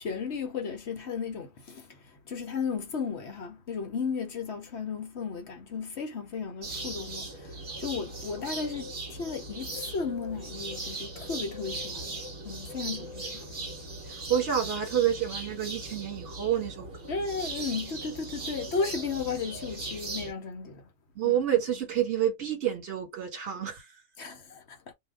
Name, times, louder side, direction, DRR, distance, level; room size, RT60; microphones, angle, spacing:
voice 1, 0.0-13.6 17.1-20.8 21.2-21.4 24.2-24.9, left 5 dB, 60° left, 1.1 m, -35 dB
sound 1, 6.6-20.3, right 2 dB, 40° right, 1.2 m, -39 dB
voice 2, 14.1-17.1 21.1-23.8, right 10 dB, 60° right, 1.5 m, -28 dB
2.7 x 2.5 x 3.4 m
omnidirectional pair, 1.4 m